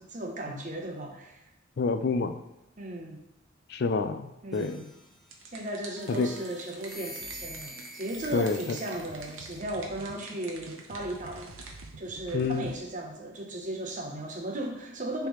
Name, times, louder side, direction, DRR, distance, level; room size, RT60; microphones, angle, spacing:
voice 1, 0.0-1.4 2.8-3.2 4.4-4.8 5.5-11.5 12.0-15.3, right 1 dB, 40° right, 2 dB, 0.9 m, -36 dB
voice 2, 1.8-2.4 3.7-4.9 6.2-6.3 8.3-8.6 12.3-12.7, left 4 dB, 50° left, 8 dB, 0.4 m, -28 dB
sound 1, 4.5-5.5 6.0-9.6, right 1 dB, ahead, 0.7 m, -46 dB
sound 2, 5.2-11.8, right 3 dB, 70° right, 1.0 m, -48 dB
sound 3, 7.2-12.8, right 3 dB, 85° right, 0.6 m, -49 dB
10.0 x 3.4 x 3.1 m, 0.87 s
head